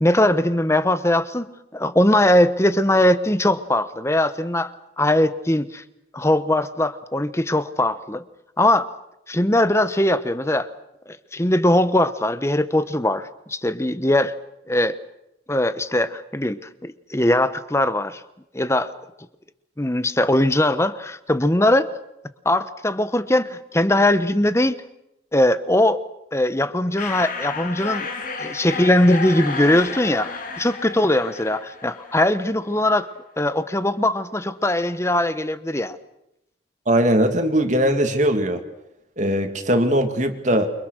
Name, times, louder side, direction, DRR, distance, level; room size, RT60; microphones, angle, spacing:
voice 1, 0.0-5.8 6.1-8.2 8.6-8.9 9.3-10.7 11.1-14.3 14.7-15.0 15.5-18.2 18.5-18.9 19.8-21.9 22.4-24.8 25.3-26.0 26.3-28.1 28.4-33.1 33.4-36.0, left 1 dB, 15° left, 13 dB, 1.1 m, -20 dB
sound 1, 27.0-32.5, left 4 dB, 50° left, 2.5 m, -32 dB
voice 2, 36.9-38.6 39.2-40.7, right 1 dB, 40° right, 6 dB, 2.4 m, -20 dB
29.0 x 24.5 x 6.5 m, 0.84 s
head